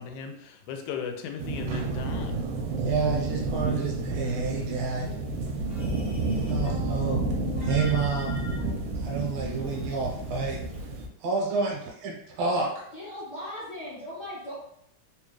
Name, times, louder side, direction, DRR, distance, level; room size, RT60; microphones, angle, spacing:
voice 1, 0.0-2.4, left 6 dB, 85° left, 5 dB, 2.0 m, -37 dB
sound 1, 1.4-11.1, right 2 dB, 85° right, 2.0 m, -30 dB
voice 2, 2.8-5.1 6.5-7.2 7.6-8.4 9.0-10.6 11.2-12.7, right 4 dB, 70° right, -1 dB, 1.7 m, -29 dB
sound 2, 5.3-10.9, left 2 dB, 40° left, 0.9 m, -41 dB
voice 3, 12.9-14.5, left 1 dB, 70° left, -9 dB, 1.0 m, -38 dB
4.6 x 2.3 x 3.1 m, 0.74 s
omnidirectional pair, 3.3 m